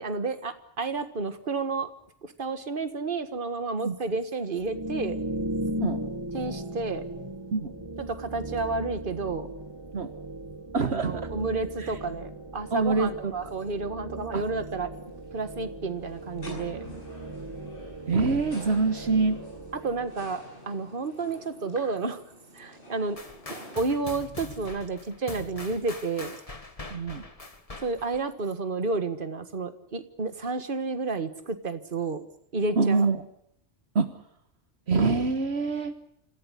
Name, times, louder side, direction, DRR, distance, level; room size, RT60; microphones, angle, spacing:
voice 1, 0.0-1.9 2.2-5.2 6.3-7.0 8.0-9.5 10.9-14.9 15.3-16.8 19.8-22.2 22.5-23.2 23.8-26.4 27.8-32.2 32.5-33.1, right 3 dB, 50° right, 10 dB, 1.8 m, -31 dB
sound 1, 4.6-20.4, right 1 dB, 25° right, 1.9 m, -37 dB
voice 2, 5.7-6.0 7.5-7.7 9.9-10.1 10.7-11.3 11.8-12.0 12.7-13.5 14.3-14.5 18.1-19.4 26.9-27.2 32.8-33.2 33.9-34.1 34.9-35.9, right 4 dB, 70° right, 9 dB, 1.6 m, -25 dB
sound 2, 14.9-23.8, equal, 55° left, 8.4 m, -48 dB
sound 3, 23.2-28.3, left 2 dB, 30° left, 2.0 m, -42 dB
27.0 x 15.5 x 9.9 m, 0.71 s
omnidirectional pair, 1.1 m